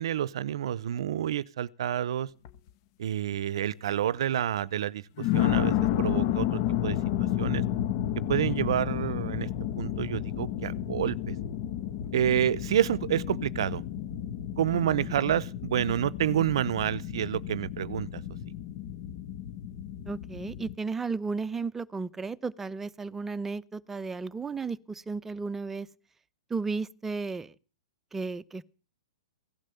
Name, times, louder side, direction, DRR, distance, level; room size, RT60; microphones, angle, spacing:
voice 1, 0.0-2.3 3.0-5.0 5.3-7.0 7.4-7.6 8.3-9.5 9.8-11.3 12.1-13.8 14.6-18.2, right 10 dB, 70° right, 0.7 m, -28 dB
sound 1, 2.4-2.7 3.3-3.4 5.2-20.7, left 11 dB, 45° left, 1.3 m, -31 dB
voice 2, 14.7-15.2 20.1-25.9 26.5-27.5 28.1-28.6, right 4 dB, 10° right, 0.7 m, -34 dB
17.0 x 11.5 x 7.0 m
hypercardioid pair, 130°, 3 cm